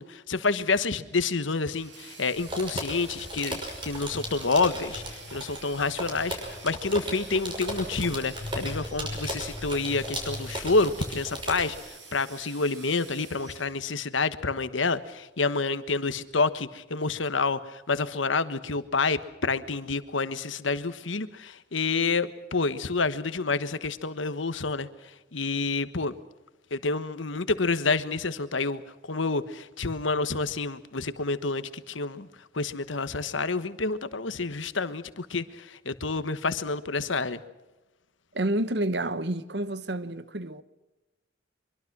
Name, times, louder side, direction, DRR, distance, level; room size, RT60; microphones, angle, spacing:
voice 1, 0.0-26.2 26.7-37.4, left 3 dB, 85° left, 1.3 m, -28 dB
sound 1, 1.7-13.7, right 4 dB, 80° right, 7.6 m, -48 dB
sound 2, 2.3-11.8, equal, 25° right, 6.0 m, -36 dB
voice 2, 38.3-40.6, right 1 dB, 60° right, 1.1 m, -29 dB
24.0 x 23.0 x 6.1 m
head